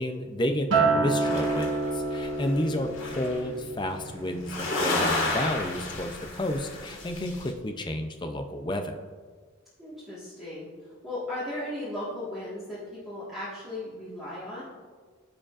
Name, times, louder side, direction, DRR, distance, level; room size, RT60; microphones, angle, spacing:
voice 1, 0.0-8.9, left 1 dB, 20° left, 6 dB, 0.5 m, -31 dB
Acoustic guitar, 0.7-5.1 5.5-5.9, right 3 dB, 60° right, 1.1 m, -29 dB
sound 1, 1.2-3.4 4.4-7.5, left 2 dB, 65° left, 1.9 m, -32 dB
voice 2, 9.8-10.7 11.0-14.6, left 1 dB, ahead, -11 dB, 1.6 m, -36 dB
15.0 x 5.0 x 2.5 m, 1.5 s
head